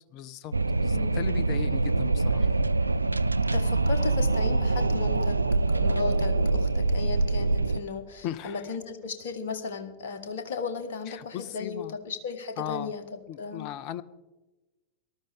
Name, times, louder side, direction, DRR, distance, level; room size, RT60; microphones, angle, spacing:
voice 1, 0.1-2.6 8.2-8.8 11.1-11.9 12.6-12.9 13.3-14.0, left 11 dB, 40° left, 17 dB, 0.6 m, -37 dB
Wind, 0.5-7.8, right 3 dB, 80° right, 0.3 m, -24 dB
voice 2, 0.9-1.3 3.5-13.0 13.4-13.7, left 5 dB, 60° left, 7 dB, 1.4 m, -35 dB
19.5 x 12.5 x 3.6 m, 1.1 s
figure-of-eight pair, 90°, 0 cm